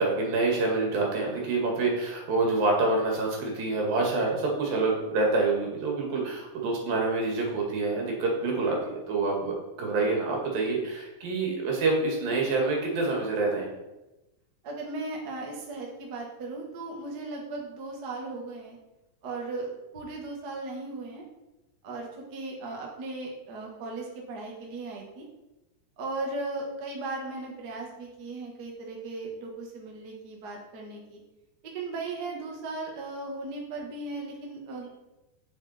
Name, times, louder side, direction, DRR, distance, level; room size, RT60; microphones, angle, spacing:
voice 1, 0.0-13.7, right 3 dB, 80° right, -1 dB, 3.8 m, -27 dB
voice 2, 14.6-18.8 19.2-21.2 21.8-25.3 26.0-31.2 31.7-34.9, right 3 dB, 40° right, -1 dB, 1.7 m, -37 dB
8.8 x 7.3 x 4.3 m, 0.99 s
omnidirectional pair, 4.0 m